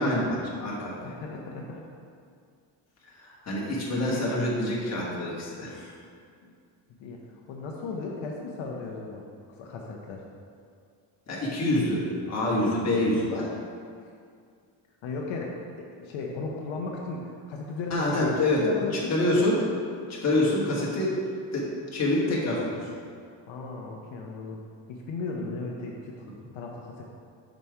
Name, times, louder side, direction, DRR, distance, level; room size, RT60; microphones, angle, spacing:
voice 1, 0.0-1.0 3.1-5.9 11.3-13.5 17.9-18.7 18.9-19.6 20.1-21.2 21.5-22.9, left 1 dB, 35° left, -5 dB, 1.5 m, -26 dB
voice 2, 1.0-1.8 6.4-6.5 7.0-9.2 9.5-10.2 15.0-19.2 23.5-24.6 24.9-27.0, left 3 dB, 80° left, -1 dB, 0.9 m, -36 dB
5.6 x 5.1 x 4.7 m, 2.2 s
cardioid pair, 160°, 46 cm